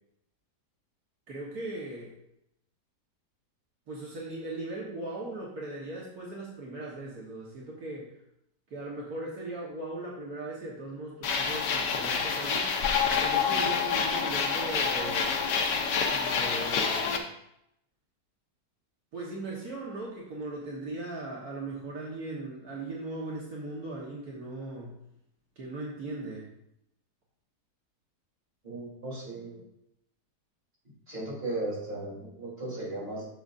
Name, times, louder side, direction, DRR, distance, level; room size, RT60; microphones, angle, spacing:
voice 1, 1.3-2.2 3.9-8.2 8.7-12.7 13.2-15.4 16.1-17.3 19.1-25.0 25.6-26.5, right 2 dB, 65° right, -4 dB, 1.9 m, -38 dB
sound 1, 11.2-17.2, left 6 dB, 85° left, 1.5 m, -27 dB
voice 2, 28.6-29.6 31.1-33.3, right 2 dB, 30° right, -6 dB, 3.7 m, -36 dB
10.0 x 7.0 x 2.6 m, 0.78 s
omnidirectional pair, 1.8 m